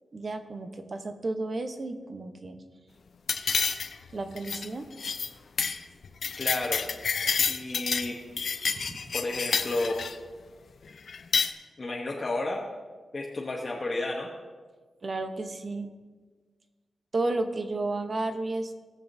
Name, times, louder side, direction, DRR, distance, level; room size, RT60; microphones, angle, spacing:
voice 1, 0.1-2.6 4.1-4.9 8.8-9.0 15.0-15.9 17.1-18.7, right 2 dB, 40° right, 7 dB, 0.8 m, -32 dB
sound 1, 3.3-4.1 4.4-4.7 5.0-5.3 5.6-5.8 6.0-8.1 8.4-10.2 11.1-11.5, left 5 dB, 60° left, 0.5 m, -29 dB
voice 2, 6.4-6.8 7.5-8.1 9.1-10.0 11.8-12.6 13.1-14.3, left 2 dB, 35° left, -3 dB, 1.0 m, -31 dB
18.0 x 7.1 x 2.7 m, 1.4 s
wide cardioid pair, 145°, 0 cm